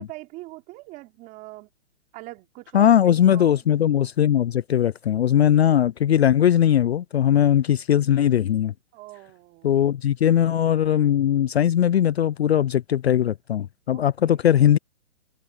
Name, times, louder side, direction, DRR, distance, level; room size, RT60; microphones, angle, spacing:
voice 1, 0.0-1.7 2.1-3.7 8.9-9.8 13.9-14.4, right 21 dB, 20° right, 3.8 m, -42 dB
voice 2, 2.7-8.7 9.6-14.8, left 10 dB, 50° left, 0.6 m, -19 dB
hypercardioid pair, 155°, 40 cm